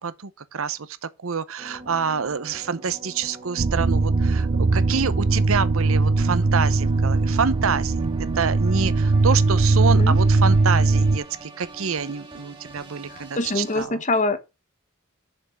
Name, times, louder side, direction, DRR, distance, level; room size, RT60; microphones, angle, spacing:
voice 1, 0.0-14.0, right 6 dB, 80° right, 0.8 m, -27 dB
sound 1, 1.6-13.9, right 2 dB, 25° right, 2.0 m, -43 dB
sound 2, 3.6-11.2, right 3 dB, 45° right, 0.5 m, -20 dB
voice 2, 13.1-14.4, left 2 dB, 35° left, 1.2 m, -24 dB
6.8 x 5.7 x 6.3 m
head